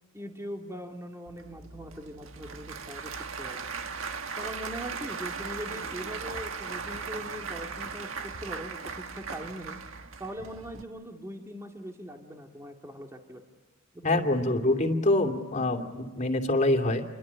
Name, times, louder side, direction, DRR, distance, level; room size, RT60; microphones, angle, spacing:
voice 1, 0.1-3.6 4.4-9.8 10.2-13.4 13.9-14.2, equal, 15° right, 2 dB, 2.2 m, -41 dB
Applause / Crowd, 1.3-10.8, right 5 dB, 80° right, 1.6 m, -38 dB
voice 2, 14.0-17.1, left 2 dB, 35° left, 5 dB, 2.7 m, -25 dB
28.5 x 23.5 x 8.7 m, 1.3 s
head